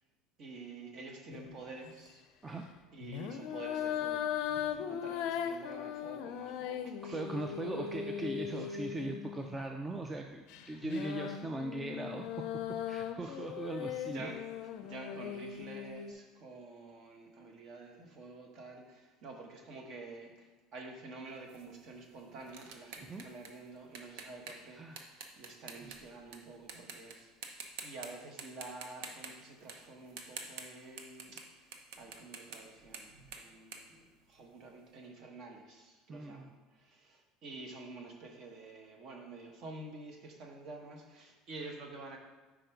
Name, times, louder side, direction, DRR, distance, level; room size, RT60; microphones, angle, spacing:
voice 1, 0.4-2.2 2.9-4.3 4.7-7.2 7.5-7.9 10.8-10.9 13.2-13.5 13.7-31.7 32.0-34.0 34.3-42.2, right 3 dB, 45° right, 2 dB, 1.1 m, -49 dB
sound 1, 1.3-1.6 3.0-9.6 10.5-16.1, left 9 dB, 65° left, 0.4 m, -39 dB
voice 2, 7.0-14.3 23.1-23.2 24.7-25.0 25.8-25.9 36.1-36.5, right 2 dB, 15° right, 3 dB, 0.3 m, -40 dB
sound 2, 21.5-26.4 26.7-27.1 27.4-28.1 28.4-34.7, right 5 dB, 80° right, 0.7 m, -48 dB
5.1 x 4.9 x 4.5 m, 1.3 s
cardioid pair, 140°, 0 cm